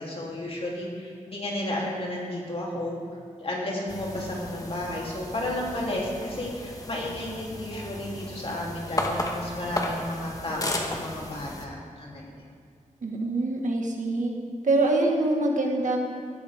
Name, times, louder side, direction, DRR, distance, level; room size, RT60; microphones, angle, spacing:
voice 1, 0.0-3.0 3.4-12.3, left 1 dB, 45° left, -4 dB, 3.3 m, -32 dB
sound 1, 3.9-11.7, left 1 dB, 25° left, 1.4 m, -34 dB
voice 2, 13.0-14.3 14.6-16.0, right 2 dB, 75° right, 0 dB, 1.9 m, -24 dB
17.5 x 13.0 x 3.7 m, 2.4 s
wide cardioid pair, 125°, 13 cm